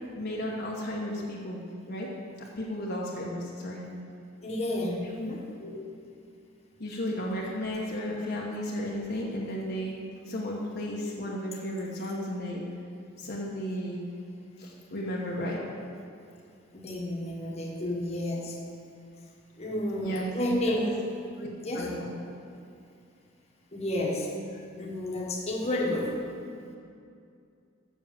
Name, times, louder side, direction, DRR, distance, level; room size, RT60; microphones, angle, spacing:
voice 1, 0.1-1.6 1.9-2.1 2.6-3.8 5.2-5.3 5.6-5.8 6.8-9.9 10.3-12.6 13.2-14.0 14.6-15.6 20.0-20.8 21.4-21.5 21.7-22.1, equal, 50° left, -3 dB, 1.1 m, -34 dB
voice 2, 4.4-5.5 16.7-18.6 19.6-21.1 21.6-21.9 23.7-26.1, left 1 dB, 30° left, -2 dB, 1.3 m, -31 dB
7.4 x 6.4 x 7.4 m, 2.5 s
head